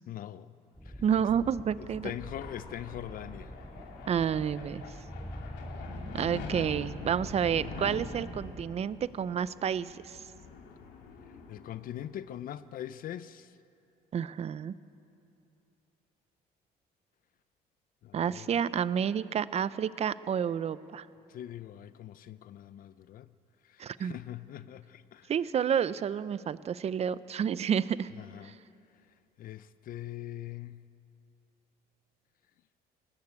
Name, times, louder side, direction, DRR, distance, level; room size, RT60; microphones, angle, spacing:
voice 1, 0.1-0.5 0.8-1.0 2.0-3.5 11.5-13.6 18.0-18.5 21.3-23.3 23.6-25.3 28.2-28.5 29.4-30.8, left 12 dB, 55° left, 15 dB, 0.6 m, -42 dB
sound 1, 0.7-8.7, equal, ahead, 3.9 m, -45 dB
voice 2, 1.0-2.1 4.1-4.8 6.1-10.2 14.1-14.7 18.1-21.1 23.8-24.2 25.3-28.1 28.4-28.5, right 8 dB, 40° right, 17 dB, 0.6 m, -30 dB
sound 2, 1.2-12.5, left 4 dB, 85° left, 2.8 m, -45 dB
19.0 x 18.5 x 8.3 m, 2.8 s
cardioid pair, 110°, 17 cm